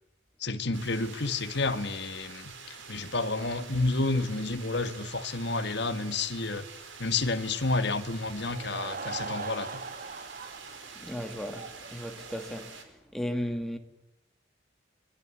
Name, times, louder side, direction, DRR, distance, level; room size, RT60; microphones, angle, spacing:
voice 1, 0.4-6.7 7.0-9.8, left 3 dB, 60° left, 1.7 m, -30 dB
sound 1, 0.7-12.8, right 5 dB, 80° right, 5.0 m, -47 dB
Laughter / Crowd, 8.3-12.8, right 4 dB, 45° right, 1.6 m, -41 dB
voice 2, 11.0-12.7 13.1-13.8, equal, ahead, 2.4 m, -35 dB
25.5 x 22.0 x 9.8 m
head